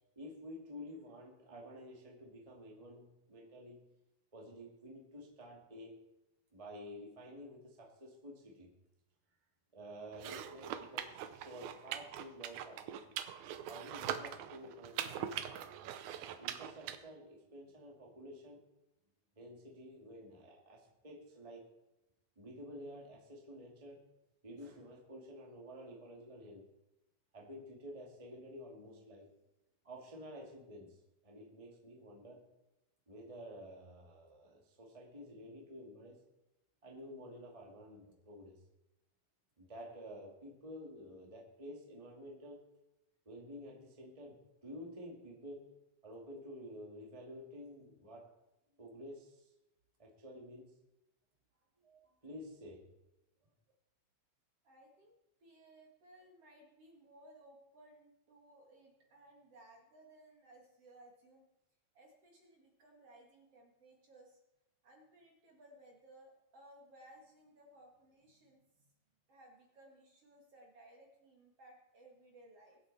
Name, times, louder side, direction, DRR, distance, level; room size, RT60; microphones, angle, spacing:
voice 1, 0.1-3.8 4.3-6.0 6.5-8.7 9.7-11.1 11.4-13.0 13.7-15.3 16.4-18.6 19.3-21.6 22.3-24.0 24.4-26.6 27.3-29.3 29.8-31.0 31.2-32.4 33.1-36.2 36.8-38.6 39.6-42.6 43.2-45.7 46.0-48.3 48.8-49.5 50.0-50.7 51.8-52.8, equal, 10° right, -1 dB, 1.7 m, -51 dB
sound 1, 10.1-17.0, right 10 dB, 75° right, 1.9 m, -42 dB
voice 2, 54.6-61.5 61.9-64.4 64.8-68.9 69.3-72.8, right 1 dB, 50° right, 0 dB, 2.6 m, -61 dB
22.0 x 8.2 x 4.2 m, 0.91 s
omnidirectional pair, 4.0 m